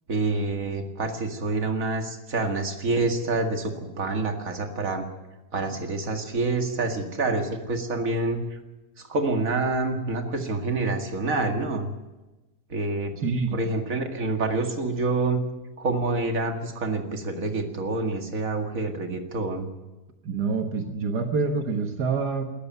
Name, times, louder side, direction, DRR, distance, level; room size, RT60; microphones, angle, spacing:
voice 1, 0.1-5.1 5.5-8.6 9.0-11.9 12.7-13.2 13.5-15.4 15.8-19.7, right 3 dB, 55° right, 4 dB, 2.4 m, -27 dB
voice 2, 13.2-13.6 20.2-22.4, right 4 dB, 80° right, 4 dB, 2.0 m, -26 dB
20.0 x 14.0 x 9.4 m, 1.1 s
omnidirectional pair, 1.7 m